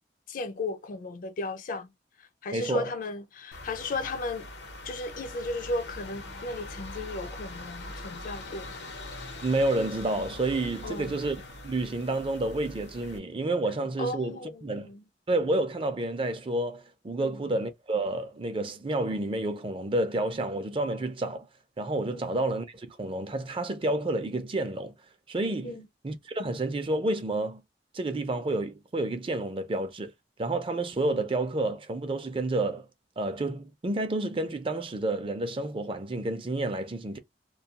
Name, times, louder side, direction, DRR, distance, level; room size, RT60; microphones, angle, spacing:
voice 1, 0.3-1.9 2.2-4.5 4.8-8.7 10.8-11.1 14.0-15.0 17.2-17.4 22.1-22.3 25.6-25.9, left 2 dB, 50° left, 0.4 m, -35 dB
voice 2, 2.5-2.9 9.4-11.4 11.6-14.9 15.3-21.5 21.8-24.9 25.3-27.6 27.9-30.1 30.4-32.9 33.2-37.2, right 2 dB, 30° right, 0.5 m, -30 dB
sound 1, 3.5-13.2, left 2 dB, 80° left, 0.8 m, -42 dB
2.3 x 2.3 x 2.7 m
head